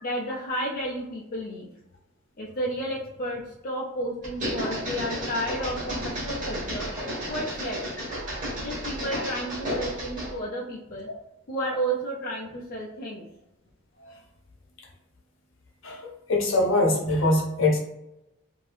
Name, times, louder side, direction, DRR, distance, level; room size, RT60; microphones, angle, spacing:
voice 1, 0.0-1.7 2.4-6.9 7.3-7.8 8.6-11.1 11.5-13.2, right 1 dB, 45° left, -4 dB, 0.5 m, -32 dB
sound 1, 4.2-10.4, equal, 40° right, 1.1 m, -32 dB
voice 2, 15.8-17.8, left 2 dB, 65° left, 0 dB, 0.8 m, -23 dB
2.7 x 2.6 x 3.2 m, 0.91 s
head